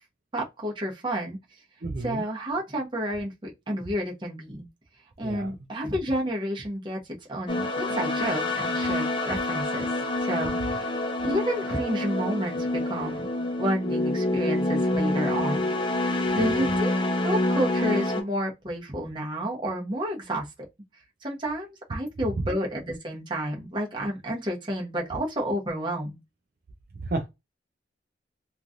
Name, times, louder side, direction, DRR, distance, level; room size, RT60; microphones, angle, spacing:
voice 1, 0.3-1.4 2.0-4.7 5.2-7.0 7.3-9.9 10.3-10.9 11.2-15.7 16.0-20.5 21.2-26.2, equal, 25° right, 0.9 m, -30 dB
voice 2, 1.8-2.2 5.2-5.5 16.4-16.5 27.1-27.3, right 2 dB, 50° right, 0.4 m, -31 dB
sound 1, 7.5-18.2, left 2 dB, 25° left, 0.6 m, -27 dB
3.0 x 2.5 x 2.5 m
head